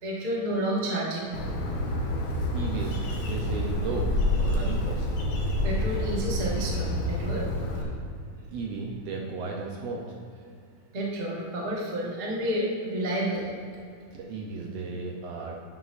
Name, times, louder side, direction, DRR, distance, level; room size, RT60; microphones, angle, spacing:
voice 1, 0.0-1.4 5.5-7.5 10.9-13.5, right 1 dB, 55° right, -4 dB, 0.5 m, -30 dB
Bird, 1.3-7.8, left 1 dB, 75° left, 2.6 m, -28 dB
voice 2, 2.5-5.1 8.5-10.0 14.1-15.6, right 4 dB, 75° right, 0 dB, 1.6 m, -35 dB
10.5 x 7.9 x 2.6 m, 2.3 s
omnidirectional pair, 3.6 m